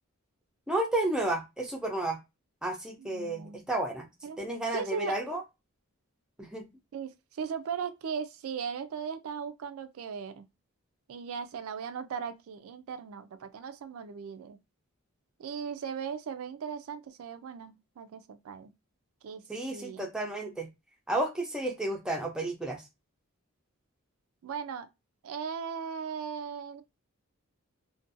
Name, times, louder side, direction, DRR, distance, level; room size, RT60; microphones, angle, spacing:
voice 1, 0.7-2.2 2.6-4.1 4.4-5.4 6.4-6.6 19.5-20.7 21.1-22.8, right 2 dB, 5° right, 0.4 m, -32 dB
voice 2, 3.0-3.6 4.2-4.4 4.7-5.2 6.9-10.4 11.1-14.6 15.4-18.7 19.2-20.1 24.4-24.9 25.2-26.8, right 6 dB, 75° right, 0.3 m, -38 dB
2.5 x 2.2 x 2.5 m
head